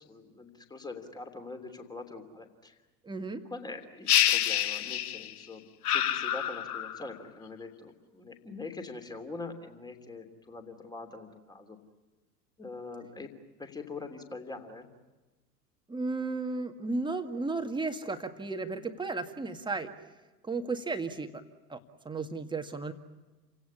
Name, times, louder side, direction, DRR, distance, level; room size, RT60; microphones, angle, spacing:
voice 1, 0.0-2.8 3.4-11.8 12.6-13.3 13.6-14.9, left 3 dB, 10° left, 6 dB, 3.1 m, -43 dB
voice 2, 3.1-3.4 15.9-19.9 20.5-21.3 21.7-21.8 22.1-22.9, right 3 dB, 10° right, 7 dB, 1.9 m, -34 dB
sound 1, 4.1-5.4 5.8-7.1, left 11 dB, 65° left, 1.0 m, -27 dB
29.5 x 17.5 x 9.8 m, 1.2 s
figure-of-eight pair, 85°, 48 cm